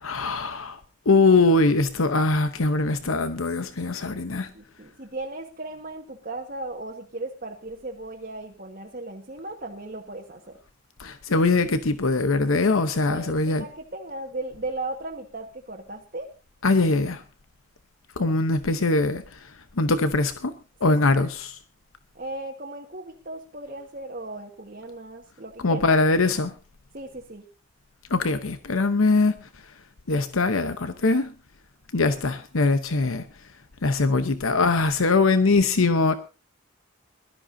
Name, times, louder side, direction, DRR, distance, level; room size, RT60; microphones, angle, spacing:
voice 1, 0.0-0.8 1.1-4.5 11.0-13.6 16.6-17.2 18.2-19.5 19.8-20.5 20.8-21.6 25.6-26.5 28.1-29.3 30.1-31.3 31.9-33.2 33.8-36.1, left 3 dB, 85° left, 0.9 m, -22 dB
voice 2, 4.3-10.6 13.1-16.3 20.8-21.0 22.1-25.9 26.9-27.4, right 2 dB, 45° right, 1.5 m, -36 dB
22.0 x 13.0 x 2.7 m
head